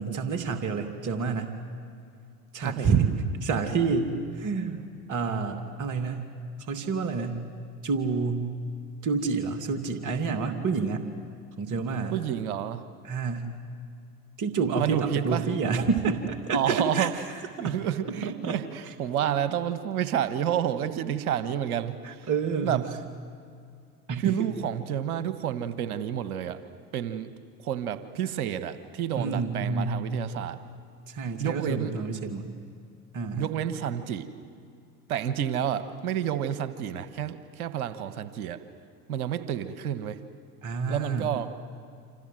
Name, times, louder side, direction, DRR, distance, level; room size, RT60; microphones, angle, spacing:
voice 1, 0.0-1.5 2.5-3.1 3.4-6.2 6.7-7.4 7.8-8.5 9.0-11.1 11.6-12.1 13.0-13.5 14.4-17.2 17.6-17.8 18.2-18.6 18.9-19.0 22.0-22.9 24.1-24.5 29.2-29.9 31.1-32.5 33.1-33.5 40.6-41.3, right 5 dB, 45° right, 6 dB, 2.6 m, -28 dB
voice 2, 2.6-2.9 12.1-12.8 14.8-15.4 16.5-17.1 17.6-22.3 22.6-22.8 24.2-26.6 26.9-27.3 27.6-30.6 31.4-31.9 33.4-34.3 35.1-38.6 39.1-40.2 40.9-41.5, right 10 dB, 75° right, 12 dB, 1.5 m, -30 dB
28.5 x 26.5 x 7.8 m, 2.4 s
hypercardioid pair, 70°, 44 cm